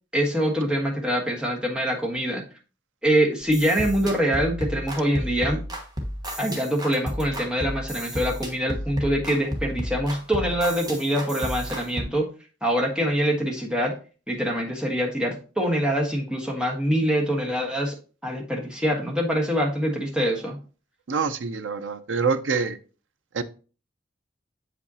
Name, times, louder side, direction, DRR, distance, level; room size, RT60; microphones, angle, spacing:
voice 1, 0.1-2.4 3.0-5.6 6.4-12.3 12.6-13.9 14.3-18.0 18.2-20.6, equal, 5° right, 1.3 m, -24 dB
sound 1, 3.4-12.0, equal, 20° right, 1.2 m, -32 dB
voice 2, 21.1-22.8 23.3-23.4, right 5 dB, 90° right, 0.6 m, -25 dB
7.6 x 5.1 x 2.8 m
head